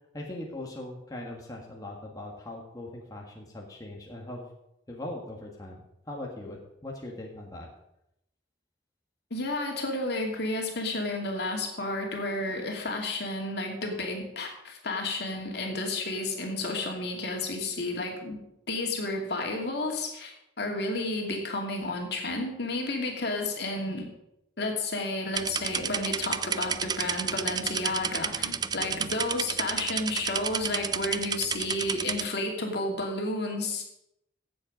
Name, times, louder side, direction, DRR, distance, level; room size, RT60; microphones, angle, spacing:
voice 1, 0.1-4.5 4.9-7.7, left 1 dB, 20° left, -1 dB, 1.6 m, -40 dB
voice 2, 9.3-18.4 18.7-24.1 24.6-33.9, left 2 dB, 60° left, 1 dB, 2.5 m, -31 dB
sound 1, 25.3-32.3, right 7 dB, 20° right, 0.3 m, -31 dB
15.5 x 7.7 x 5.2 m, 0.82 s
head